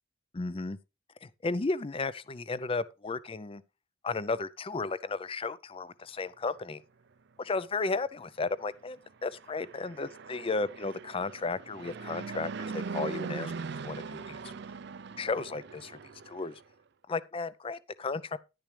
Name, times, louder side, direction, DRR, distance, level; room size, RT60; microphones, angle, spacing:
voice 1, 0.3-0.8 1.2-3.6 4.0-6.8 7.4-13.5 13.8-14.4 15.2-16.0 16.3-16.6 17.1-18.4, left 3 dB, 30° left, 0.5 m, -34 dB
Fixed-wing aircraft airplane, 9.2-16.6, right 4 dB, 60° right, 0.5 m, -41 dB
10.5 x 10.5 x 3.3 m
head